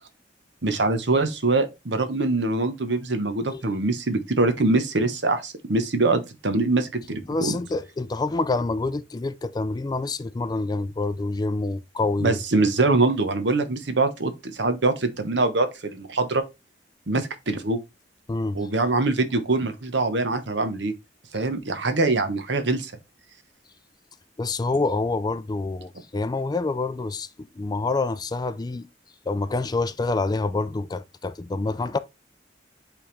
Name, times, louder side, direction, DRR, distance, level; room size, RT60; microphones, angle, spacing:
voice 1, 0.6-7.6 12.2-16.4 17.1-17.8 18.5-20.9 21.3-22.9, right 3 dB, 70° right, 1.0 m, -23 dB
voice 2, 7.3-12.4 18.3-18.6 24.4-28.9 29.3-32.0, left 3 dB, 20° left, 0.3 m, -27 dB
8.6 x 3.5 x 3.3 m
head